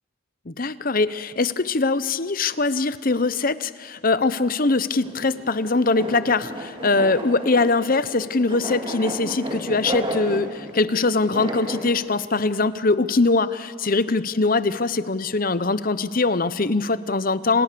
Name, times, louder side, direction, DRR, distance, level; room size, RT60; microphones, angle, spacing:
voice 1, 0.5-17.6, left 3 dB, 40° left, 14 dB, 0.9 m, -22 dB
sound 1, 5.0-11.9, equal, 25° right, 4.2 m, -33 dB
30.0 x 27.0 x 6.9 m, 2.1 s
head